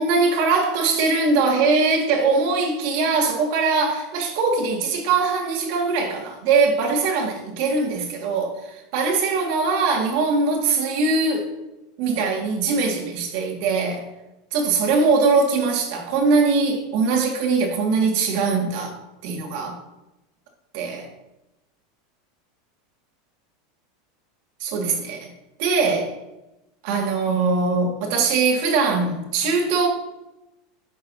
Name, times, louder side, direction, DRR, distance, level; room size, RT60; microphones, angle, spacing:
voice 1, 0.0-11.5 12.0-14.1 14.5-19.0 19.2-19.8 20.7-21.1 24.6-25.3 25.6-26.1 26.8-29.9, right 4 dB, 65° right, 1 dB, 2.0 m, -21 dB
11.0 x 5.5 x 2.8 m, 0.94 s
supercardioid pair, 130°, 0 cm